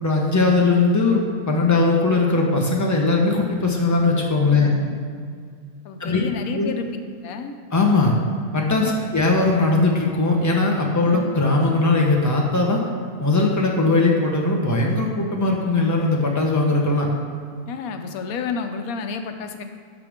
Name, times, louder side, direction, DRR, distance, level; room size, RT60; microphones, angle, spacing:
voice 1, 0.0-4.7 6.0-6.2 6.5-6.8 7.7-8.1 8.5-12.8 13.2-17.1, left 3 dB, 15° left, -1 dB, 1.1 m, -19 dB
voice 2, 4.5-5.1 5.8-6.9 7.2-7.5 8.8-9.1 11.0-11.3 17.7-19.6, left 5 dB, 90° left, 7 dB, 1.1 m, -31 dB
11.0 x 6.9 x 3.7 m, 2.1 s
omnidirectional pair, 1.5 m